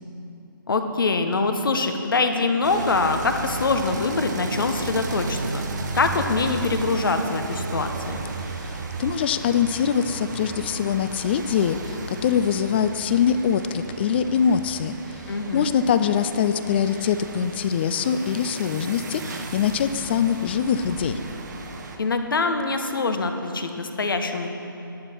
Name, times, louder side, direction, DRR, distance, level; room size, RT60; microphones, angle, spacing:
voice 1, 0.7-5.6 5.9-8.2 15.3-15.7 22.0-24.5, left 3 dB, 70° left, 7 dB, 1.0 m, -24 dB
sound 1, 2.6-22.0, right 3 dB, 50° right, 1.0 m, -35 dB
voice 2, 8.6-15.0 15.5-21.2, left 7 dB, 30° left, 11 dB, 0.4 m, -23 dB
11.0 x 9.2 x 4.5 m, 3.0 s
figure-of-eight pair, 145°, 12 cm